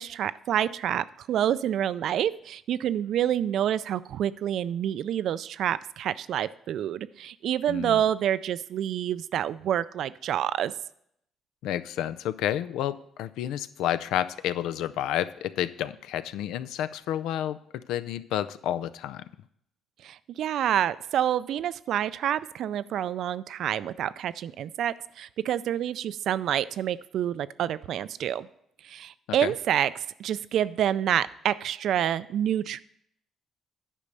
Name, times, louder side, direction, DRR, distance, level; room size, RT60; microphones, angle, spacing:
voice 1, 0.0-10.7 20.0-28.5 28.8-32.8, right 10 dB, 70° right, 16 dB, 0.4 m, -28 dB
voice 2, 7.7-8.0 11.6-19.2 29.4-29.5, left 11 dB, 80° left, 14 dB, 0.4 m, -30 dB
10.0 x 5.2 x 6.7 m, 0.72 s
cardioid pair, 80°, 0 cm